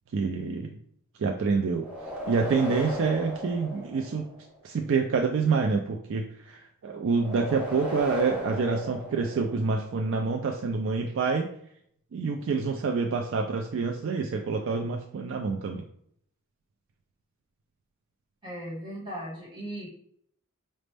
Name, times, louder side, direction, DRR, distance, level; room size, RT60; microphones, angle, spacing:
voice 1, 0.1-0.8 1.2-1.9 2.3-4.3 4.6-11.5 12.1-15.8, right 4 dB, 55° right, 3 dB, 0.3 m, -27 dB
sound 1, 1.8-4.5 7.1-9.8, left 1 dB, 5° right, 1.5 m, -36 dB
voice 2, 18.4-19.9, right 1 dB, 20° right, -4 dB, 1.6 m, -37 dB
5.1 x 2.1 x 3.3 m, 0.67 s
head